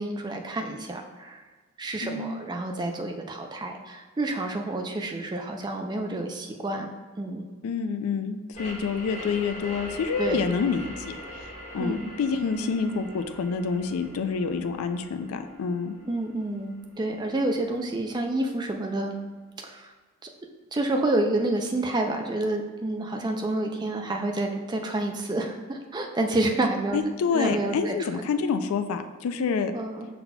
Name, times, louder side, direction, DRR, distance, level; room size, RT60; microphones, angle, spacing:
voice 1, 0.0-1.4 1.8-7.5 10.2-10.4 11.8-12.1 16.0-19.2 19.6-19.9 20.2-20.3 20.7-27.0 27.3-27.9 29.7-30.1, right 2 dB, 20° right, 3 dB, 0.3 m, -29 dB
voice 2, 2.0-2.4 7.6-16.0 26.9-29.7, left 5 dB, 70° left, 8 dB, 0.3 m, -28 dB
sound 1, 8.5-17.9, equal, 30° left, 1.4 m, -42 dB
5.6 x 4.1 x 2.2 m, 1.4 s
head